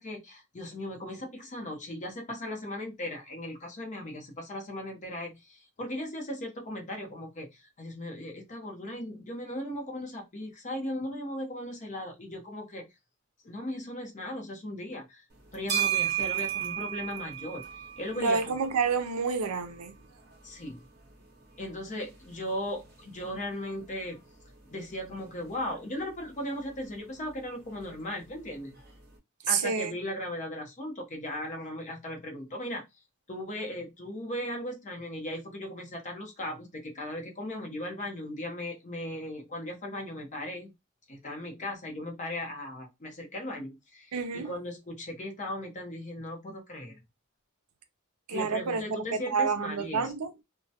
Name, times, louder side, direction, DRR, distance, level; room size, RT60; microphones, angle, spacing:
voice 1, 0.0-12.8 13.4-15.2 15.5-18.5 20.4-20.8 21.6-24.2 24.7-28.7 29.5-32.8 33.3-40.7 41.1-47.0 48.3-50.1, left 1 dB, 35° left, 0.7 m, -37 dB
sound 1, 15.3-29.2, right 10 dB, 45° right, 0.8 m, -38 dB
voice 2, 18.1-19.9 29.4-29.9 44.1-44.5 48.3-50.3, right 5 dB, 75° right, 0.5 m, -29 dB
2.2 x 2.1 x 2.7 m
head